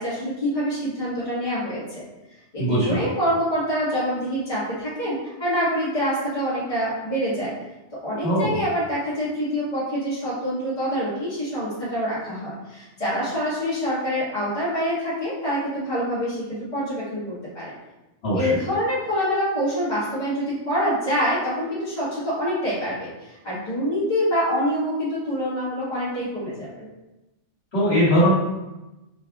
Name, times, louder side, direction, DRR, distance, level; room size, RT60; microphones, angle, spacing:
voice 1, 0.0-2.0 2.5-7.5 8.0-17.7 18.3-26.9, equal, 40° left, -11 dB, 1.7 m, -26 dB
voice 2, 2.6-3.0 8.2-8.5 18.2-18.5 27.7-28.3, equal, 60° left, -10 dB, 2.0 m, -20 dB
5.0 x 3.2 x 2.3 m, 1.0 s
omnidirectional pair, 1.2 m